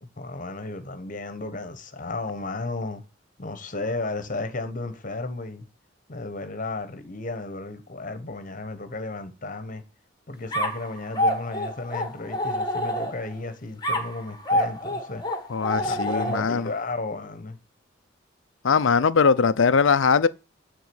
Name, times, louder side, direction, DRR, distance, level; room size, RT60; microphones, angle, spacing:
voice 1, 0.0-3.0 3.4-5.7 6.1-9.8 10.3-15.2 15.8-17.6, left 3 dB, 45° left, 1.1 m, -34 dB
sound 1, 10.5-13.4 13.8-16.7, equal, 20° left, 1.3 m, -27 dB
voice 2, 15.5-16.7 18.6-20.3, left 5 dB, 80° left, 0.5 m, -20 dB
9.6 x 3.8 x 7.0 m
head